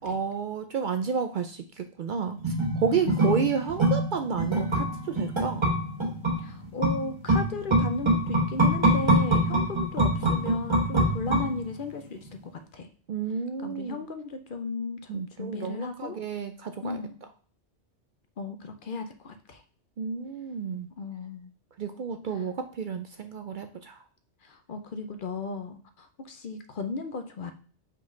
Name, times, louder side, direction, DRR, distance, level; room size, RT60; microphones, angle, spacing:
voice 1, 0.0-5.7 13.1-14.0 15.1-17.0 20.0-20.9 21.8-24.0, right 6 dB, 60° right, 7 dB, 0.6 m, -31 dB
sound 1, 2.4-12.0 12.3-12.4, right 1 dB, 25° right, 1.3 m, -25 dB
voice 2, 2.9-3.3 6.4-12.3 12.7-12.9 13.6-16.2 16.8-17.3 18.4-19.6 21.0-21.5 24.4-27.5, left 3 dB, 55° left, 7 dB, 0.8 m, -35 dB
5.1 x 3.9 x 5.6 m, 0.43 s
omnidirectional pair, 1.1 m